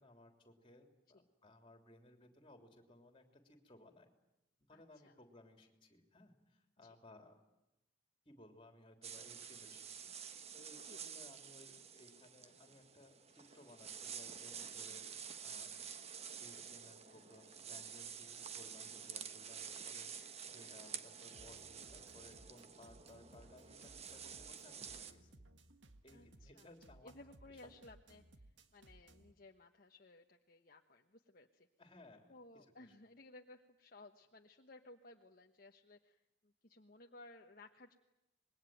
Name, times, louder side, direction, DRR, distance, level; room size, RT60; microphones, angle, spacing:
voice 1, 0.0-4.1 4.7-7.4 8.2-10.1 10.5-15.7 16.4-25.4 26.0-27.2 31.8-32.6, left 1 dB, 25° left, 5 dB, 3.4 m, -61 dB
voice 2, 4.7-5.1 6.8-7.0 10.8-11.1 14.8-15.1 20.1-20.3 26.1-26.7 27.0-31.7 32.3-38.0, left 2 dB, 50° left, 3 dB, 1.2 m, -59 dB
sound 1, 9.0-25.1, right 7 dB, 35° right, 1.2 m, -50 dB
sound 2, 21.3-29.3, right 2 dB, 70° right, 1.7 m, -62 dB
26.0 x 21.5 x 9.3 m, 0.92 s
head